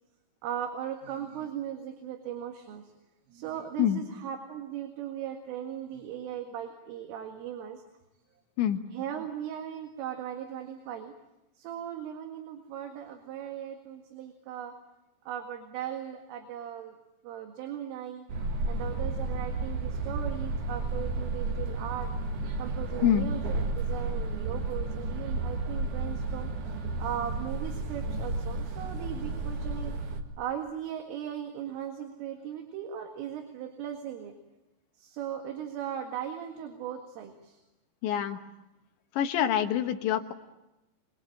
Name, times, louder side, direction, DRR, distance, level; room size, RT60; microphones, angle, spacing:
voice 1, 0.4-2.8 3.3-7.8 8.9-11.1 11.6-14.8 15.3-17.0 17.2-18.3 18.7-22.1 22.6-26.5 27.0-30.0 30.4-34.3 35.0-37.6, right 9 dB, 75° right, 4 dB, 4.3 m, -38 dB
sound 1, 18.3-30.2, right 3 dB, 55° right, 2.3 m, -32 dB
voice 2, 38.0-38.4 39.2-40.3, left 10 dB, 70° left, 6 dB, 3.2 m, -26 dB
27.0 x 21.0 x 8.6 m, 0.94 s
omnidirectional pair, 6.0 m